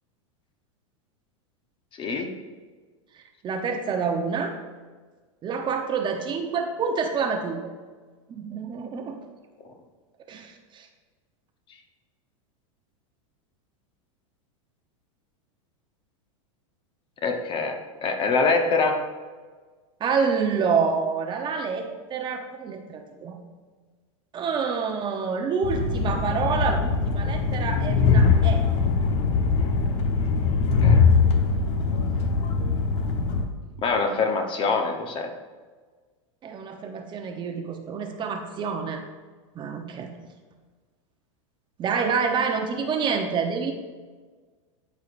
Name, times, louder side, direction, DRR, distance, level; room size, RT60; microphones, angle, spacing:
voice 1, 2.0-2.3 17.2-19.1 30.8-31.0 33.8-35.3, left 4 dB, 30° left, 5 dB, 1.0 m, -24 dB
voice 2, 3.2-4.6 5.4-7.7 8.3-9.2 10.3-10.9 20.0-23.4 24.3-28.6 36.4-39.0 39.5-40.1 41.8-43.7, right 5 dB, 30° right, 4 dB, 0.8 m, -27 dB
Train, 25.6-33.5, left 5 dB, 60° left, 1.0 m, -22 dB
13.0 x 4.7 x 2.6 m, 1.4 s
supercardioid pair, 125°, 17 cm